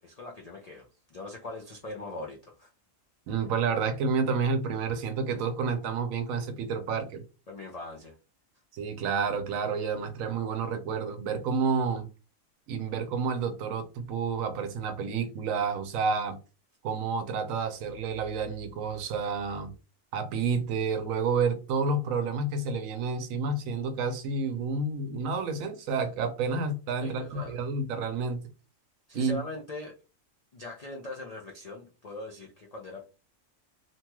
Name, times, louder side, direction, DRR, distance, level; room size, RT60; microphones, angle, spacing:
voice 1, 0.0-2.7 7.5-8.1 27.0-27.6 29.1-29.9 30.5-33.0, left 2 dB, 75° left, 0.3 m, -41 dB
voice 2, 3.3-7.2 8.7-12.1 12.7-16.4 16.8-19.7 20.1-28.4 29.1-29.4, right 5 dB, 80° right, 1.0 m, -30 dB
2.9 x 2.2 x 2.9 m
omnidirectional pair, 1.4 m